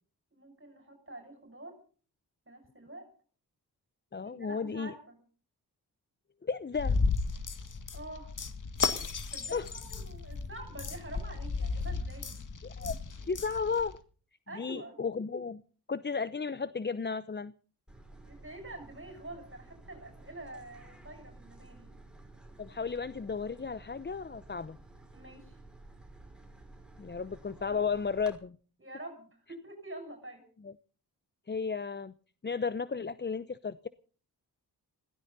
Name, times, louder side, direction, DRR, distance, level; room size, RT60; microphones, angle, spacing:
voice 1, 0.3-1.8 2.5-3.1 4.2-5.2 7.9-8.3 9.3-12.4 14.5-15.0 18.3-22.0 25.1-25.6 27.6-27.8 28.8-30.4, right 2 dB, 30° right, 4 dB, 6.7 m, -47 dB
voice 2, 4.1-4.9 6.4-7.0 9.5-9.7 12.6-13.0 13.3-14.0 14.5-15.6 15.9-17.5 22.6-24.8 27.0-28.6 30.6-30.7 31.5-32.1 32.4-33.9, left 5 dB, 25° left, 16 dB, 0.7 m, -34 dB
sound 1, 6.7-13.9, left 4 dB, 50° left, 2.0 m, -34 dB
sound 2, 17.9-28.4, right 2 dB, ahead, 5.9 m, -53 dB
21.0 x 16.5 x 4.1 m, 0.41 s
cardioid pair, 55°, 40 cm